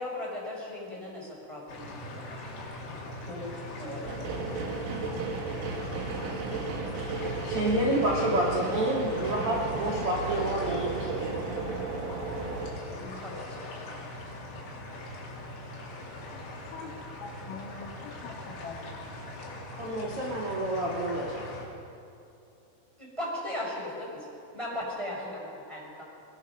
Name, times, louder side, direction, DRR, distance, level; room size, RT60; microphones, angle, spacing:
voice 1, 0.0-2.4 2.8-4.3 12.7-13.9 23.0-24.3 24.5-26.0, left 1 dB, 5° right, -3 dB, 4.6 m, -38 dB
sound 1, 1.7-21.7, left 1 dB, 60° left, 5.1 m, -41 dB
sound 2, 4.1-12.7, right 4 dB, 70° right, 4.2 m, -34 dB
voice 2, 6.2-6.6 16.4-16.9 17.2-19.1, left 5 dB, 75° left, 1 dB, 1.9 m, -44 dB
voice 3, 7.4-11.4 19.8-21.5, right 1 dB, 50° right, -3 dB, 1.7 m, -29 dB
21.0 x 21.0 x 5.9 m, 2.7 s
omnidirectional pair, 5.8 m